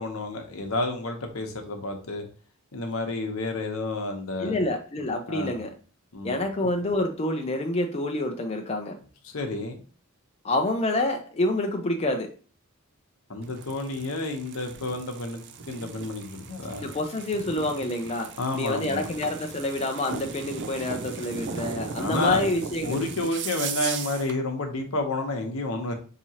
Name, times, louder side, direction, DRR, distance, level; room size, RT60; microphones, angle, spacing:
voice 1, 0.0-2.3 2.7-4.6 5.3-5.6 6.1-6.4 9.2-9.8 13.3-16.9 18.4-19.2 21.9-22.4 22.8-25.9, left 2 dB, 75° left, 4 dB, 0.9 m, -30 dB
voice 2, 4.4-5.7 6.2-9.0 10.4-12.3 16.8-23.0, left 1 dB, 30° left, 3 dB, 0.5 m, -27 dB
sound 1, 13.4-24.4, right 5 dB, 55° right, 0.5 m, -37 dB
5.9 x 2.8 x 2.8 m, 0.40 s
head